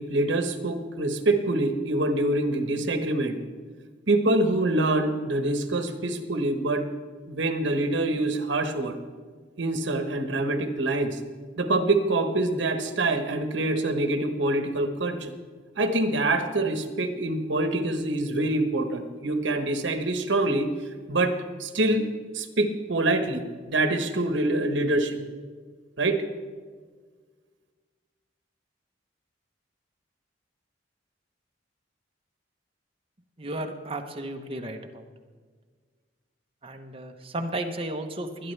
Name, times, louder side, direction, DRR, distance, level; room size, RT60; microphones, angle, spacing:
voice 1, 0.0-3.4 4.1-6.9 7.3-9.0 9.6-11.2 11.6-15.3 15.8-20.7 21.1-21.3 21.6-22.1 22.3-25.2 26.0-26.2, right 2 dB, 75° right, 6 dB, 1.2 m, -25 dB
voice 2, 33.4-35.1 36.6-38.5, right 1 dB, 30° right, 4 dB, 1.0 m, -34 dB
20.5 x 10.5 x 3.4 m, 1.5 s
head